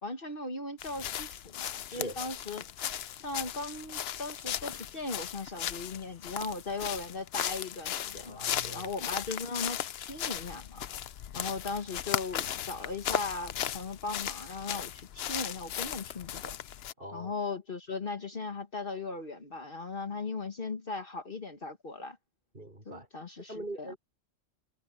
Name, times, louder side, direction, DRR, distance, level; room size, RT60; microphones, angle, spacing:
voice 1, 0.0-2.7 3.2-10.8 11.3-16.6 17.1-22.2 22.8-23.9, left 3 dB, 45° left, 1.6 m, -38 dB
sound 1, 0.8-16.9, left 10 dB, 60° left, 0.8 m, -37 dB
voice 2, 8.2-8.9 17.0-17.3 22.5-23.1 23.5-24.0, right 1 dB, 45° right, 6.1 m, -42 dB
omnidirectional pair, 1.3 m